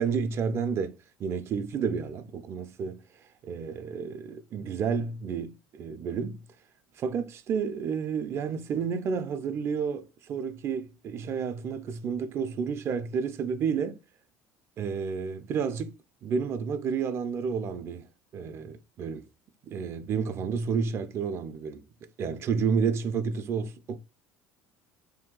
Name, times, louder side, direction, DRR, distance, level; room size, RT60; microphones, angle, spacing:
voice 1, 0.0-3.0 3.4-6.4 7.0-14.0 14.8-18.1 18.3-19.2 19.6-21.8 22.2-24.0, right 6 dB, 50° right, 0.4 m, -31 dB
2.7 x 2.3 x 3.7 m
supercardioid pair, 90°, 6 cm